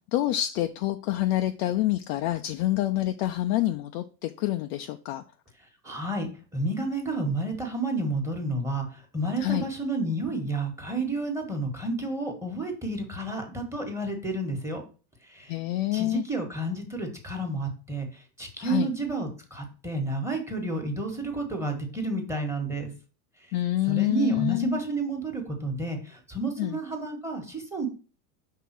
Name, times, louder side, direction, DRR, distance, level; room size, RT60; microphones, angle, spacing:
voice 1, 0.1-5.2 9.4-9.7 15.5-16.2 18.6-18.9 23.5-24.8 26.6-26.8, left 15 dB, 40° left, 7 dB, 0.4 m, -27 dB
voice 2, 5.8-8.9 9.1-14.9 15.3-15.6 15.9-18.1 18.4-22.9 23.9-27.9, right 2 dB, 5° right, 4 dB, 1.4 m, -30 dB
5.5 x 3.7 x 5.8 m, 0.36 s
supercardioid pair, 130°, 48 cm